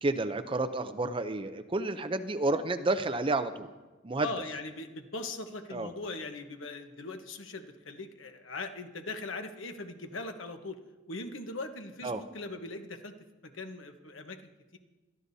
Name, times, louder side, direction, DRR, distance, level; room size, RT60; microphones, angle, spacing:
voice 1, 0.0-3.7 4.0-4.3 5.7-5.9 12.0-12.2, right 2 dB, 25° right, 10 dB, 0.6 m, -30 dB
voice 2, 4.2-10.8 11.1-13.1 13.4-14.4, left 3 dB, 85° left, 6 dB, 1.1 m, -40 dB
21.0 x 13.0 x 2.7 m, 1.2 s
head